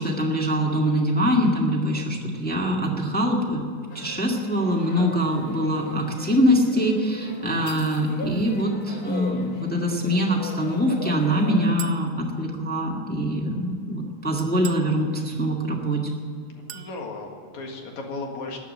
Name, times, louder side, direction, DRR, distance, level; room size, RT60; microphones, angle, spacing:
voice 1, 0.0-3.6 3.9-16.0, equal, 5° left, -1 dB, 0.7 m, -23 dB
sound 1, 3.9-11.7, left 3 dB, 55° left, 1.0 m, -40 dB
Chink clink, 11.8-12.1 14.4-14.9 16.7-17.0, right 10 dB, 85° right, 2.2 m, -39 dB
voice 2, 16.5-18.6, left 3 dB, 75° left, 2 dB, 3.1 m, -36 dB
14.0 x 9.3 x 7.9 m, 2.3 s
omnidirectional pair, 3.5 m